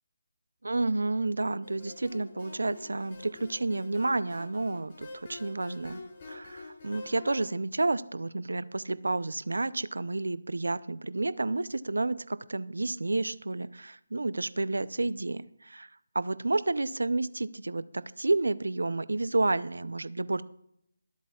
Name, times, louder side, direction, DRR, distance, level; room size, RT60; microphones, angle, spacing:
voice 1, 0.6-6.0 6.3-15.9 16.1-20.4, right 2 dB, 80° right, 17 dB, 0.5 m, -30 dB
sound 1, 1.6-7.5, left 2 dB, 40° left, 5.4 m, -47 dB
23.5 x 8.1 x 2.4 m, 0.73 s
figure-of-eight pair, 155°, 0 cm